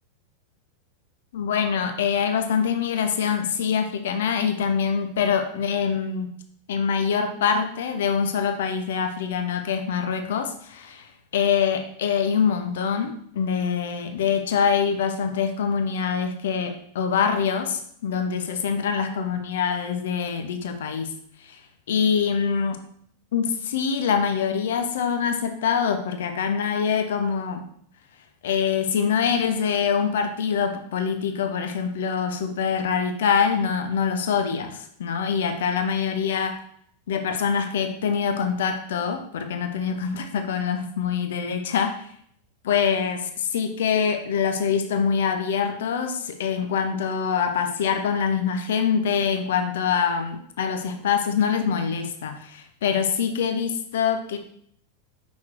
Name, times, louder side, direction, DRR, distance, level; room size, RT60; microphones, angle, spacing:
voice 1, 1.3-6.3 6.7-21.1 21.5-21.6 21.9-22.8 23.3-27.6 28.4-36.6 37.1-41.9 42.6-54.4, left 6 dB, 60° left, 7 dB, 0.7 m, -24 dB
6.2 x 5.7 x 2.9 m, 0.65 s
figure-of-eight pair, 90°, 0 cm